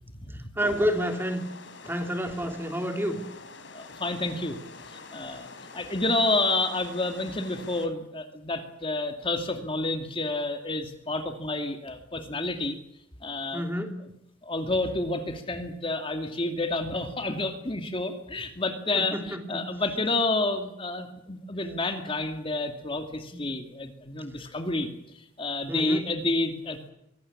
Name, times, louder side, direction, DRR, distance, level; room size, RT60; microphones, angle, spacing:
sound 1, 0.6-7.9, left 3 dB, 75° left, 3.8 m, -46 dB
voice 1, 0.6-1.4 1.8-3.2 13.5-14.0 18.9-19.7 23.3-23.4 25.7-26.0, equal, 10° right, 5 dB, 3.2 m, -29 dB
voice 2, 3.7-4.6 4.9-5.5 5.7-12.8 13.2-13.6 14.4-24.9 25.4-26.9, left 2 dB, 30° left, 6 dB, 2.3 m, -29 dB
24.5 x 19.0 x 8.7 m, 0.76 s
head